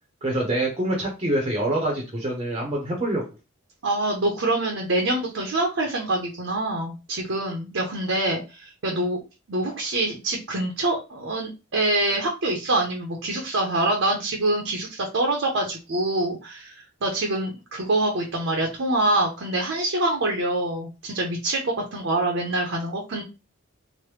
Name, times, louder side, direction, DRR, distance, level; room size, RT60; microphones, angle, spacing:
voice 1, 0.2-3.2, right 1 dB, 25° right, -1 dB, 0.6 m, -25 dB
voice 2, 3.8-9.2 9.5-23.2, right 2 dB, 70° right, 0 dB, 0.6 m, -25 dB
3.0 x 2.1 x 3.2 m, 0.29 s
head